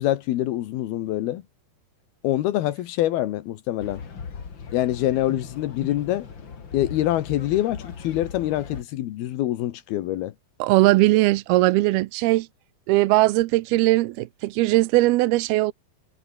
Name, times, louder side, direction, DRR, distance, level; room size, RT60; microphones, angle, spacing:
voice 1, 0.0-1.4 2.2-4.0 4.7-6.3 6.7-10.3, left 14 dB, 85° left, 3.2 m, -25 dB
sound 1, 3.8-8.8, left 6 dB, 35° left, 2.6 m, -38 dB
voice 2, 10.6-12.5 12.9-15.7, right 19 dB, 85° right, 2.7 m, -19 dB
omnidirectional pair, 4.3 m